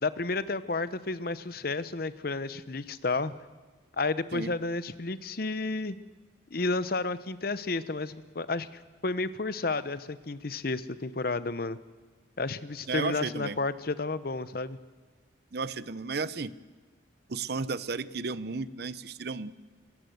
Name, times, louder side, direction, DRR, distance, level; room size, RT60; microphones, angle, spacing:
voice 1, 0.0-3.3 4.0-6.0 6.5-8.7 9.0-11.8 12.4-14.8, left 3 dB, 50° left, 15 dB, 0.8 m, -31 dB
voice 2, 12.9-13.6 15.5-16.5 17.3-19.6, right 4 dB, 55° right, 17 dB, 0.6 m, -33 dB
25.0 x 16.0 x 8.0 m, 1.4 s
head